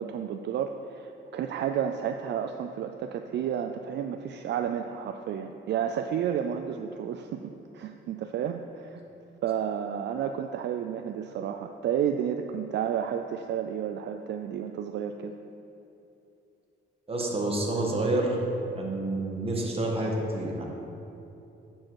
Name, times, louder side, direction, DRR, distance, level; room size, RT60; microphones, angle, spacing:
voice 1, 0.0-9.0 9.4-15.3, right 8 dB, 60° right, 6 dB, 0.4 m, -31 dB
voice 2, 17.1-18.4 18.7-20.6, right 2 dB, 30° right, -1 dB, 1.6 m, -28 dB
10.5 x 4.5 x 4.7 m, 2.8 s
cardioid pair, 90°, 20 cm